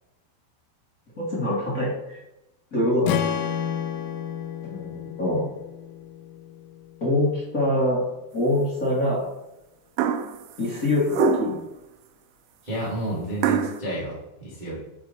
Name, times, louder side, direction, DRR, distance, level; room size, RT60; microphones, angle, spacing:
voice 1, 1.2-2.2 2.7-3.2 4.6-5.5 7.0-8.0 8.3-9.3 10.6-11.5, left 1 dB, 35° left, -7 dB, 1.3 m, -24 dB
Strum, 3.1-7.3, left 9 dB, 85° left, 2.8 m, -31 dB
sound 1, 10.0-10.4 11.1-11.7 13.4-13.8, right 9 dB, 85° right, 2.2 m, -24 dB
voice 2, 12.6-14.8, right 1 dB, 60° right, -7 dB, 0.4 m, -31 dB
10.0 x 4.5 x 4.2 m, 0.92 s
omnidirectional pair, 5.1 m